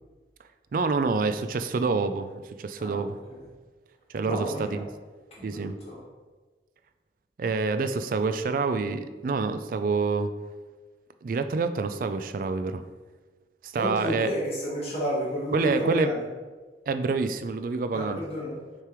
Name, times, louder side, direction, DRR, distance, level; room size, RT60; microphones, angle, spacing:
voice 1, 0.7-2.3 2.6-3.2 4.1-4.9 5.4-5.8 7.4-10.3 11.2-12.8 13.6-14.3 15.5-16.1 16.9-18.2, right 4 dB, 50° right, 10 dB, 0.3 m, -27 dB
voice 2, 2.8-3.5 4.2-4.8 5.3-6.0 13.8-16.2 17.9-18.6, equal, 35° left, -6 dB, 1.8 m, -31 dB
6.6 x 3.3 x 4.5 m, 1.3 s
head